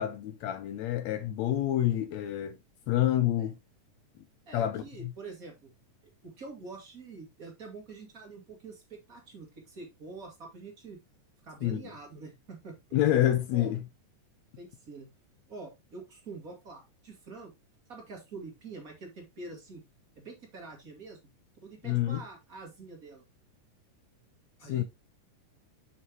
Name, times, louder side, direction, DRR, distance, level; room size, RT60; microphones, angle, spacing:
voice 1, 0.0-2.6 2.9-3.6 4.5-4.8 11.6-11.8 12.9-13.8 21.8-22.2 24.6-24.8, left 12 dB, 80° left, 1.6 m, -27 dB
voice 2, 4.5-5.7 6.2-11.0 11.4-13.0 13.5-13.7 14.6-15.1 15.5-17.5 17.9-19.8 20.2-21.2 21.6-23.2 24.6-24.8, right 3 dB, 30° right, 2.1 m, -46 dB
7.5 x 6.2 x 3.0 m
omnidirectional pair, 3.8 m